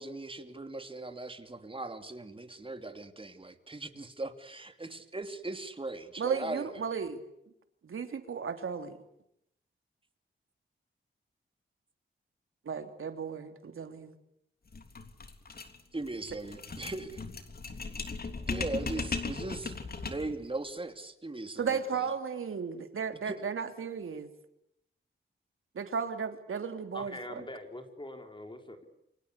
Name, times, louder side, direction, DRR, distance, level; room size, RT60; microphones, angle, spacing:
voice 1, 0.0-6.7 15.9-17.2 18.5-19.8 20.0-22.1 23.2-23.4, right 2 dB, 25° right, 8 dB, 2.8 m, -39 dB
voice 2, 6.2-7.2 7.8-9.0 12.6-14.1 21.6-24.3 25.7-27.2, right 6 dB, 80° right, 7 dB, 3.2 m, -35 dB
sound 1, 14.7-20.4, left 4 dB, 45° left, 3.3 m, -37 dB
voice 3, 26.9-28.8, left 1 dB, 25° left, 6 dB, 4.0 m, -43 dB
29.0 x 25.0 x 8.3 m, 0.77 s
wide cardioid pair, 95°, 21 cm